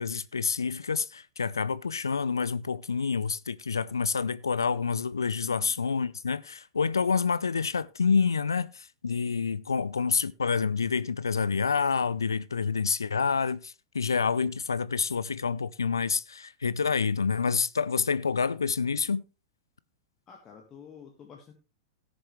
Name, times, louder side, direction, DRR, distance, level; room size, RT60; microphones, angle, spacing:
voice 1, 0.0-19.2, left 5 dB, 75° left, 0.4 m, -28 dB
voice 2, 5.4-5.7 20.3-21.5, left 7 dB, 25° left, 1.7 m, -49 dB
17.5 x 6.9 x 3.2 m
figure-of-eight pair, 100°, 2 cm